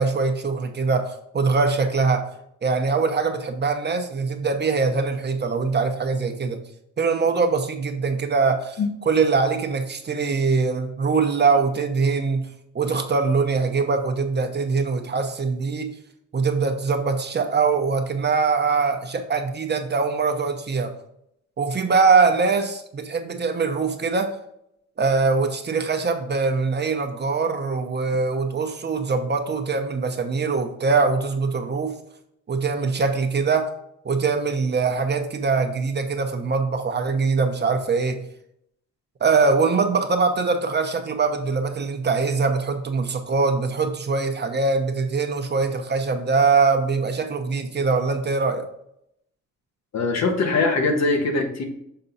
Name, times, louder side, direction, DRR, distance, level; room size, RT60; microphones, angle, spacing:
voice 1, 0.0-2.2 2.6-6.6 7.0-8.8 9.1-12.5 12.7-15.9 16.3-20.9 21.6-24.4 25.0-31.9 32.5-33.7 34.0-38.2 39.2-48.7, right 4 dB, 35° right, 6 dB, 0.9 m, -22 dB
voice 2, 49.9-51.6, left 3 dB, 60° left, 4 dB, 1.4 m, -22 dB
6.8 x 3.8 x 4.1 m, 0.74 s
cardioid pair, 90°, 30 cm